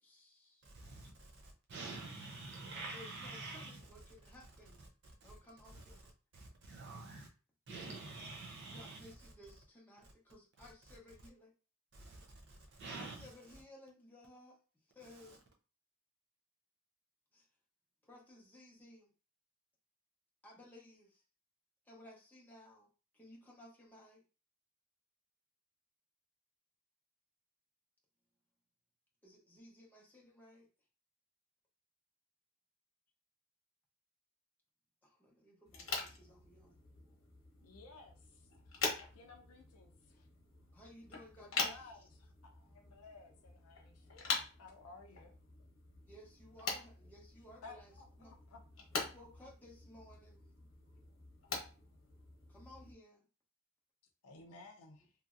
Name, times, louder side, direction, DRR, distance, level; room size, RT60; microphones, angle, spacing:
voice 1, 0.0-0.6 2.9-4.9 5.2-6.1 8.7-11.5 12.9-14.6 14.9-15.4 17.3-17.5 18.0-19.1 20.4-21.2 21.8-22.9 23.1-24.2 29.2-30.7 35.0-36.8 40.7-42.0 46.1-48.3 48.9-50.7 52.5-53.3, left 1 dB, 10° left, 0.7 m, -58 dB
voice 2, 0.7-1.1 1.7-3.8 5.2-5.3 5.6-6.0 6.3-7.3 7.7-9.3 10.9-11.0 11.9-12.2 12.8-13.3 15.0-15.4, right 3 dB, 50° right, 0.5 m, -47 dB
sound 1, 35.7-52.9, left 4 dB, 65° left, 0.9 m, -44 dB
voice 3, 37.6-38.5 39.1-40.3 41.4-45.3 47.6-48.6 54.2-55.1, left 3 dB, 80° left, 0.4 m, -56 dB
2.9 x 2.5 x 2.4 m
head